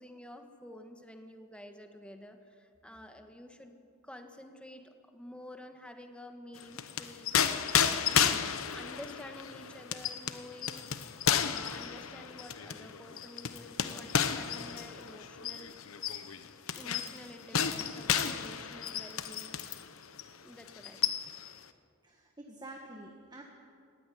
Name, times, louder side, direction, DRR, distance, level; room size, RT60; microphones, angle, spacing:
voice 1, 0.0-8.3 8.7-10.9 11.3-15.8 16.7-19.9 20.4-21.2, left 1 dB, 5° left, 5 dB, 1.5 m, -50 dB
sound 1, 6.6-19.9 20.2-20.4 20.7-21.5, left 8 dB, 75° left, 1.0 m, -32 dB
voice 2, 22.0-23.4, right 2 dB, 20° right, 1 dB, 1.7 m, -48 dB
18.0 x 15.5 x 9.9 m, 2.4 s
head